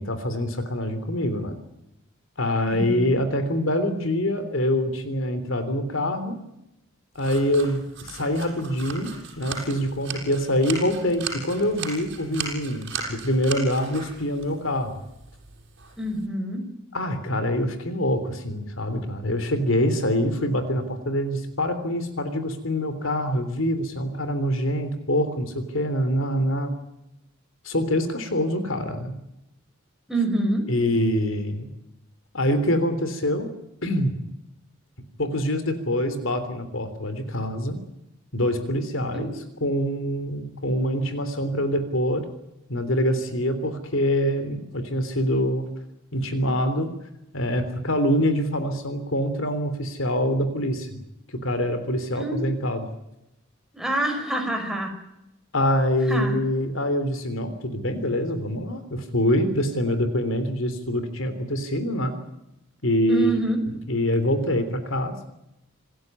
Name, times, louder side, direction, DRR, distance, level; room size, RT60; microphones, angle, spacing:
voice 1, 0.0-1.6 2.4-6.4 7.1-15.0 16.9-26.8 27.6-29.1 30.7-31.7 32.3-33.5 33.8-34.1 35.2-37.8 38.3-39.3 39.6-42.2 42.7-45.7 46.1-46.9 47.3-50.9 51.3-52.9 55.5-62.1 62.8-63.4 63.9-65.1, equal, 70° left, 10 dB, 3.4 m, -25 dB
voice 2, 2.7-3.2 16.0-16.6 30.1-30.6 39.1-39.3 52.1-52.4 53.7-54.9 56.1-56.3 63.1-63.6, right 1 dB, ahead, 2 dB, 5.8 m, -26 dB
sound 1, 7.2-16.3, right 5 dB, 60° right, 6.8 m, -37 dB
27.0 x 15.0 x 9.7 m, 0.87 s
head